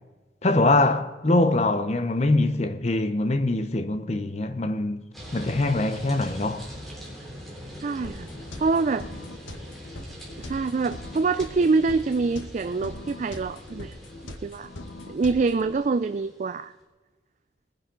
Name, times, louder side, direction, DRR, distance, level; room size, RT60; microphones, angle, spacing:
voice 1, 0.4-6.7, left 2 dB, 35° left, 0.8 m, -23 dB
sound 1, 5.1-16.6, equal, ahead, 3.5 m, -43 dB
voice 2, 7.8-8.3 8.6-9.1 10.4-14.0 14.2-14.7 15.1-16.7, right 4 dB, 40° right, 0.3 m, -25 dB
sound 2, 8.0-15.7, left 2 dB, 85° left, 1.1 m, -41 dB
20.0 x 10.0 x 3.8 m
head